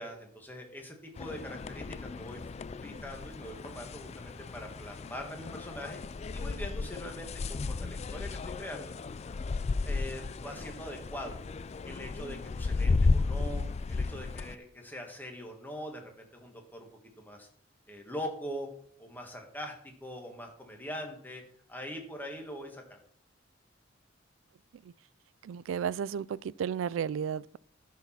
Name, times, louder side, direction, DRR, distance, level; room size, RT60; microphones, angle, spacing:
voice 1, 0.0-6.0 6.3-8.9 9.8-11.4 11.8-16.9 17.2-17.5 17.9-18.7 19.0-21.4 21.7-23.0, equal, 10° left, 1.8 m, -42 dB
sound 1, 1.2-14.6, left 3 dB, 35° left, 0.4 m, -34 dB
voice 2, 25.4-27.6, right 7 dB, 80° right, 0.3 m, -33 dB
13.5 x 4.7 x 5.8 m
head